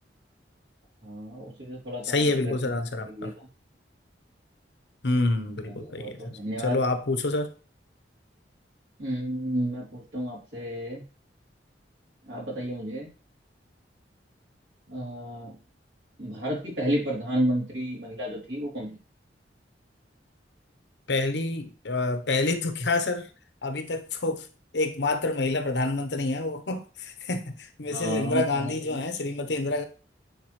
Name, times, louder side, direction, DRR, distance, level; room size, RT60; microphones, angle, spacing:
voice 1, 1.0-2.8 3.2-3.5 5.6-6.8 9.0-11.0 12.3-13.1 14.9-15.6 16.2-19.0 27.9-29.0, equal, 75° right, 3.0 m, -32 dB
voice 2, 2.0-3.3 5.0-7.5 21.1-23.3 23.6-24.5 24.7-29.8, left 2 dB, 70° left, 0.9 m, -27 dB
9.3 x 4.1 x 3.1 m
head